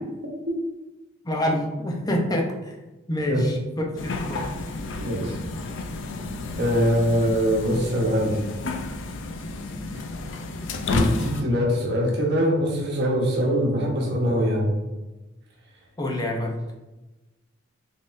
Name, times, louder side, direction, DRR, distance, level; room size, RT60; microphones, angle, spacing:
voice 1, 1.2-2.7 3.1-4.5 16.0-16.5, left 1 dB, 20° left, 1 dB, 0.5 m, -26 dB
sound 1, 4.0-11.4, left 3 dB, 70° left, 0.4 m, -31 dB
voice 2, 5.0-5.4 6.6-8.4 10.9-14.8, equal, 60° right, -2 dB, 1.0 m, -23 dB
4.0 x 3.6 x 2.5 m, 1.1 s
head